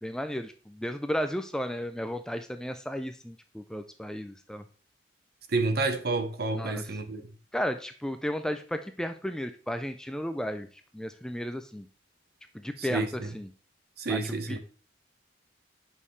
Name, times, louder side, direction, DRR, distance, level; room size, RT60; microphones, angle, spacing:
voice 1, 0.0-4.6 6.5-6.8 7.5-10.7 10.9-11.9 12.5-13.1 13.3-13.5 14.1-14.6, equal, 5° left, 0.3 m, -34 dB
voice 2, 5.5-7.3 12.8-13.3 14.0-14.6, right 3 dB, 55° right, 0.7 m, -29 dB
6.4 x 5.5 x 3.1 m
head